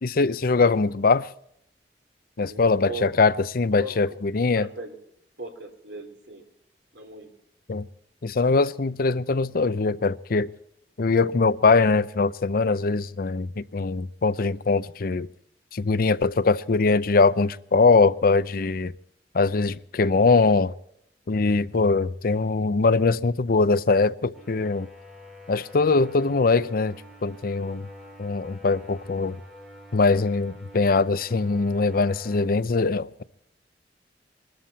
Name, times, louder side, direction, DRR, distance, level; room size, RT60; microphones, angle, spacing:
voice 1, 0.0-1.3 2.4-4.7 7.7-7.9 8.2-10.5 11.0-15.3 15.7-18.9 19.3-20.7 21.3-24.9 25.5-27.0 27.2-27.9 28.2-29.4 29.9-33.2, left 3 dB, 55° left, 0.6 m, -22 dB
voice 2, 2.4-3.1 3.7-4.2 4.5-5.0 5.4-6.4 6.9-7.3, right 1 dB, 80° right, 3.4 m, -38 dB
sound 1, 24.3-32.5, left 1 dB, ahead, 3.6 m, -47 dB
22.0 x 13.0 x 4.2 m
head